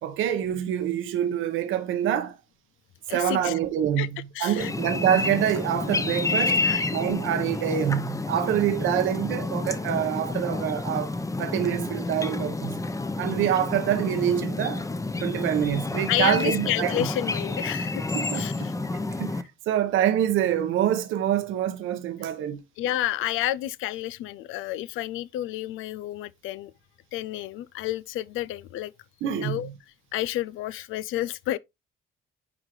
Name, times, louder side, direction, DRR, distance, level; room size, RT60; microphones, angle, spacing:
voice 1, 0.0-2.4 3.1-6.6 6.9-12.8 13.2-14.8 15.2-17.1 18.1-18.7 19.2-22.6 29.2-29.7, right 10 dB, 90° right, 1.1 m, -26 dB
voice 2, 3.1-3.6 4.0-4.1 4.3-4.7 6.3-6.8 16.1-18.1 18.3-18.7 22.8-26.7 27.1-28.9 29.4-29.7 30.1-31.6, left 14 dB, 90° left, 0.4 m, -30 dB
sound 1, 4.6-19.4, left 3 dB, 15° left, 0.8 m, -29 dB
10.0 x 3.7 x 3.2 m
cardioid pair, 90°, 20 cm